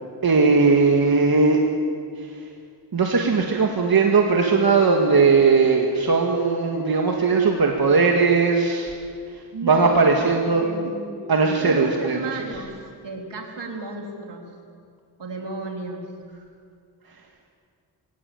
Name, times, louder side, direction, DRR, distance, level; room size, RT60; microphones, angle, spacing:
voice 1, 0.2-1.6 2.9-8.9 9.6-10.7 11.3-12.2, right 4 dB, 55° right, 1 dB, 1.9 m, -18 dB
voice 2, 9.5-10.0 10.4-11.3 11.6-12.8 13.0-14.4 15.2-16.0, right 3 dB, 80° right, 1 dB, 3.7 m, -33 dB
22.5 x 17.5 x 8.8 m, 2.2 s
wide cardioid pair, 100°, 42 cm